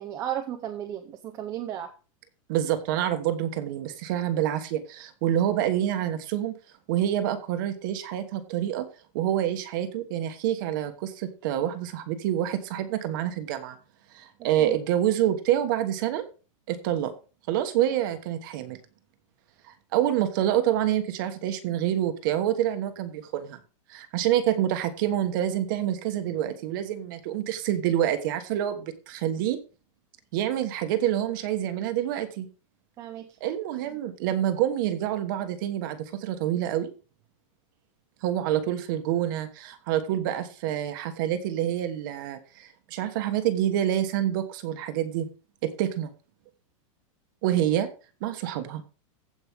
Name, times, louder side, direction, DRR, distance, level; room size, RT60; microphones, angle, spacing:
voice 1, 0.0-1.9 14.6-14.8 33.0-33.3, right 11 dB, 15° right, 4 dB, 0.7 m, -34 dB
voice 2, 2.5-6.5 6.9-8.9 9.1-13.8 14.1-16.2 16.7-17.1 17.5-18.8 19.7-23.6 23.9-29.6 30.3-32.5 33.4-36.9 38.2-45.3 45.6-46.1 47.4-47.9 48.2-48.8, right 11 dB, 35° right, 9 dB, 1.3 m, -27 dB
15.5 x 5.3 x 3.5 m, 0.35 s
supercardioid pair, 180°, 17 cm